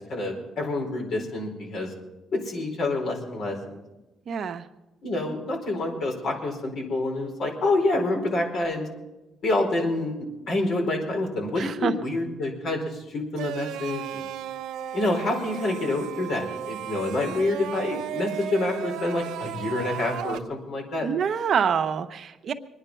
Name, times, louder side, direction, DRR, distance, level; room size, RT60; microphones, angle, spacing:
voice 1, 0.1-1.9 2.3-3.8 5.0-8.9 9.4-14.2 14.9-21.1, left 2 dB, 65° left, 1 dB, 4.7 m, -27 dB
voice 2, 4.3-4.6 11.6-11.9 21.0-22.5, right 7 dB, 60° right, 7 dB, 1.0 m, -26 dB
sound 1, 13.4-20.4, right 11 dB, 90° right, 0.7 m, -35 dB
23.5 x 10.0 x 5.7 m, 1.1 s
cardioid pair, 90°, 0 cm